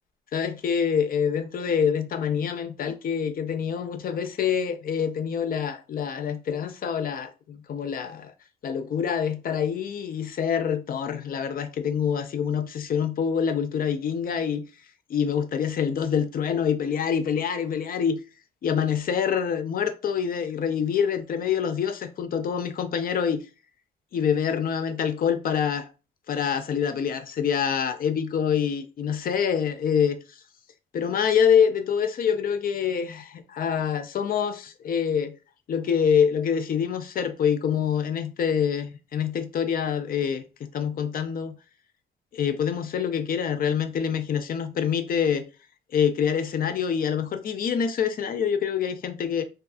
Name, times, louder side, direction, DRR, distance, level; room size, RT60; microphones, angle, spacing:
voice 1, 0.3-8.3 8.6-14.7 15.1-18.2 18.6-23.4 24.1-25.9 26.3-30.2 30.9-35.3 35.7-41.6 42.3-45.4 45.9-49.4, left 7 dB, 45° left, 0.4 m, -26 dB
2.6 x 2.3 x 2.3 m
cardioid pair, 90°, 20 cm